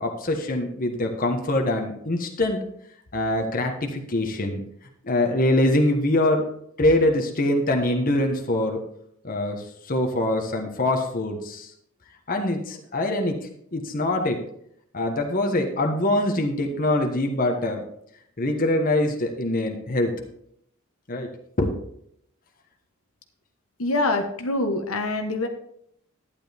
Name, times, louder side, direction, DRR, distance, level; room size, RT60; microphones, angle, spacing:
voice 1, 0.0-2.6 3.1-4.6 5.0-6.4 6.8-8.8 9.2-11.7 12.3-13.4 13.7-14.4 14.9-17.8 18.4-20.2 21.1-21.3 21.6-21.7, left 1 dB, 40° left, 3 dB, 1.2 m, -24 dB
voice 2, 23.8-25.5, left 2 dB, 70° left, 4 dB, 1.2 m, -25 dB
11.5 x 10.0 x 3.5 m, 0.71 s
head